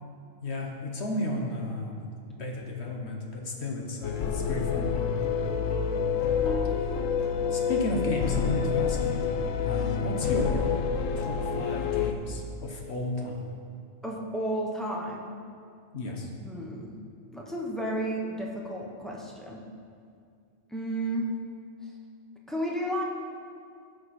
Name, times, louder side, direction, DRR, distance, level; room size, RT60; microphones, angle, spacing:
voice 1, 0.4-2.0 2.3-4.9 7.5-9.3 9.6-10.7 11.2-13.4 15.9-16.3, left 2 dB, 55° left, 1 dB, 1.3 m, -33 dB
sound 1, 4.0-12.1, left 7 dB, 80° left, 1.0 m, -28 dB
voice 2, 14.0-15.3 16.4-17.0 17.3-19.6 20.7-21.3 22.5-23.0, right 1 dB, ahead, -3 dB, 1.0 m, -32 dB
15.5 x 5.2 x 4.3 m, 2.3 s
omnidirectional pair, 1.4 m